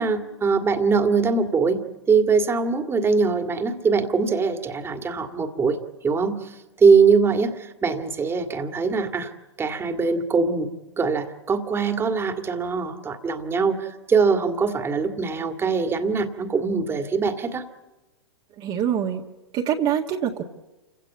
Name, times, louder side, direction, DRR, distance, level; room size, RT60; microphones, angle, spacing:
voice 1, 0.0-1.8 2.1-5.8 6.0-9.3 9.6-10.7 11.0-17.6, right 5 dB, 15° right, 6 dB, 2.1 m, -22 dB
voice 2, 18.6-19.2 19.5-20.4, right 9 dB, 35° right, 0 dB, 1.7 m, -24 dB
28.0 x 16.5 x 8.4 m, 1.1 s
hypercardioid pair, 110°, 14 cm